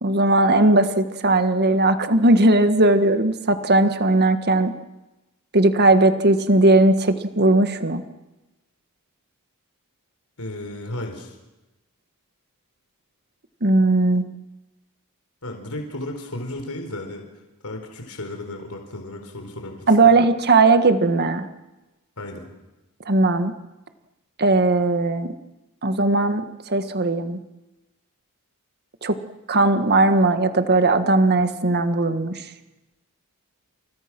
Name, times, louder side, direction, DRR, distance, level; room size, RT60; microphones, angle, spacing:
voice 1, 0.0-4.7 5.5-8.0 13.6-14.3 19.9-21.5 23.0-23.5 24.4-25.3 25.8-27.4 29.0-29.2 29.5-32.4, right 2 dB, 45° right, 9 dB, 1.7 m, -18 dB
voice 2, 10.4-11.4 15.4-17.2 17.6-19.9 22.2-22.5, left 1 dB, 75° left, 4 dB, 4.2 m, -34 dB
29.5 x 28.5 x 6.2 m, 1.0 s
head